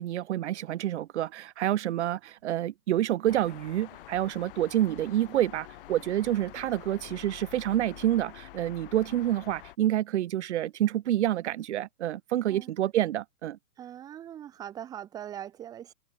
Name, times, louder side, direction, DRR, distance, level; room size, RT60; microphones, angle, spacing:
voice 1, 0.0-13.6, right 12 dB, 45° right, 0.6 m, -28 dB
sound 1, 3.3-9.8, left 16 dB, 35° left, 0.9 m, -47 dB
voice 2, 13.8-15.9, right 10 dB, 10° right, 0.7 m, -41 dB
hypercardioid pair, 135°, 50 cm